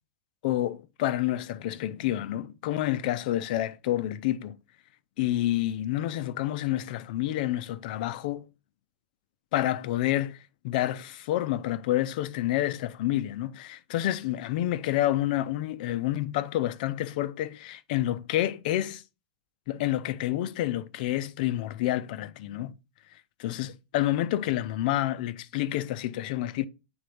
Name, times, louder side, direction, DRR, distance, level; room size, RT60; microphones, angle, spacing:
voice 1, 0.4-4.6 5.2-8.5 9.5-10.4 10.6-19.0 19.7-22.8 23.4-26.7, left 14 dB, 55° left, 0.5 m, -28 dB
8.7 x 3.8 x 3.4 m
supercardioid pair, 155°, 6 cm